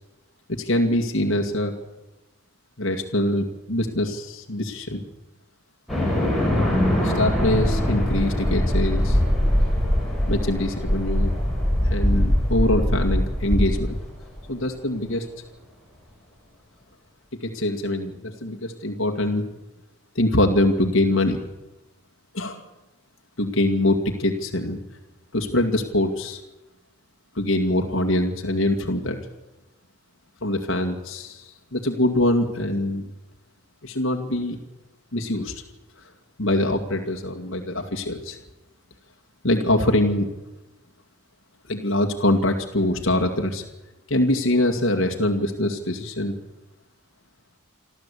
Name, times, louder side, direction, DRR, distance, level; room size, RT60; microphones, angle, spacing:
voice 1, 0.6-1.7 2.8-5.0 7.0-9.2 10.3-11.3 11.9-14.0 14.5-15.3 17.4-19.4 20.2-21.4 22.3-22.6 23.4-24.8 25.3-26.4 27.4-29.2 30.4-31.4 31.7-33.0 33.8-34.6 35.1-35.5 36.4-38.4 39.4-40.3 41.7-43.6 44.1-46.3, left 1 dB, 60° left, 3 dB, 2.2 m, -23 dB
sound 1, 5.9-14.4, equal, ahead, 6.2 m, -22 dB
27.0 x 13.0 x 8.5 m, 1.0 s
head